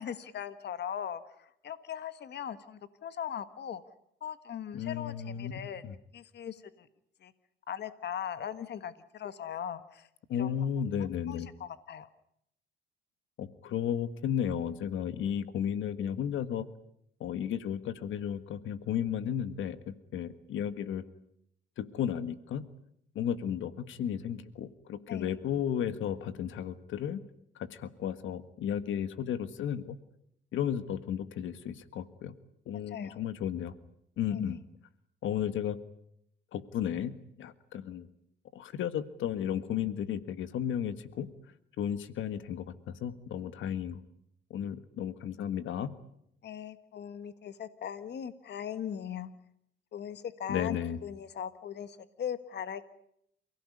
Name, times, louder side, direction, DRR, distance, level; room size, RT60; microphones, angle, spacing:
voice 1, 0.0-3.8 4.2-5.8 6.1-6.9 7.2-7.3 7.7-10.1 10.4-10.5 11.3-12.1 25.1-25.3 32.9-33.2 34.3-34.6 46.4-49.3 49.9-50.8 51.0-52.9, left 9 dB, 60° left, 12 dB, 1.6 m, -39 dB
voice 2, 4.7-5.9 10.3-11.5 13.4-16.7 17.2-21.0 21.8-22.6 23.1-27.2 27.5-30.0 30.5-32.3 32.7-33.7 34.2-34.6 35.2-35.8 36.5-37.1 37.4-38.1 38.5-41.3 41.8-44.0 44.5-45.9 50.5-51.0, left 9 dB, 80° left, 12 dB, 1.7 m, -34 dB
29.0 x 17.0 x 9.8 m, 0.74 s
cardioid pair, 90°, 20 cm